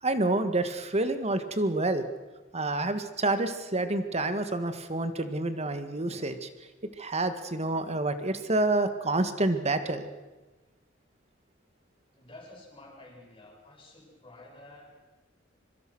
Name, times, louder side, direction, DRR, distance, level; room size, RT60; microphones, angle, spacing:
voice 1, 0.0-2.0 2.5-6.5 7.0-10.1, right 2 dB, 35° right, 9 dB, 1.8 m, -28 dB
voice 2, 12.1-15.0, left 2 dB, 25° left, -2 dB, 8.0 m, -50 dB
25.0 x 23.5 x 6.2 m, 1.2 s
head